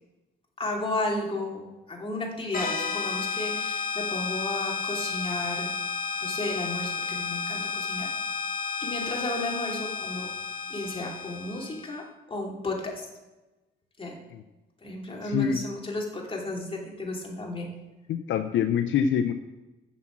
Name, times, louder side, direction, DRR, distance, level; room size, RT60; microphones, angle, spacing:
voice 1, 0.6-5.7 6.2-8.1 8.8-10.3 10.7-13.1 14.0-14.2 14.8-17.7, left 2 dB, 25° left, -1 dB, 2.9 m, -33 dB
sound 1, 2.5-11.9, left 5 dB, 45° left, 1.8 m, -32 dB
voice 2, 15.2-15.6 18.1-19.3, left 8 dB, 75° left, 9 dB, 0.6 m, -25 dB
8.2 x 7.4 x 7.4 m, 1.1 s
cardioid pair, 90°, 20 cm